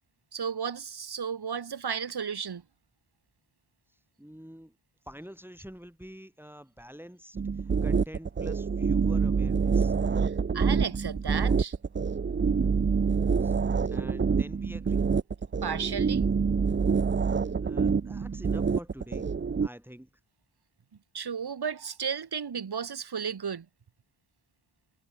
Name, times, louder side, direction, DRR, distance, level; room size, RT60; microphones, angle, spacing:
voice 1, 0.3-2.6 10.2-11.8 15.6-16.3 21.1-23.7, right 7 dB, 50° right, 1.8 m, -34 dB
voice 2, 4.2-4.7 5.0-10.0 13.4-13.6 13.9-15.0 17.3-19.3 19.6-20.1, equal, 5° right, 4.3 m, -46 dB
sound 1, 7.4-19.7, right 5 dB, 25° right, 0.6 m, -26 dB
cardioid pair, 70°, 48 cm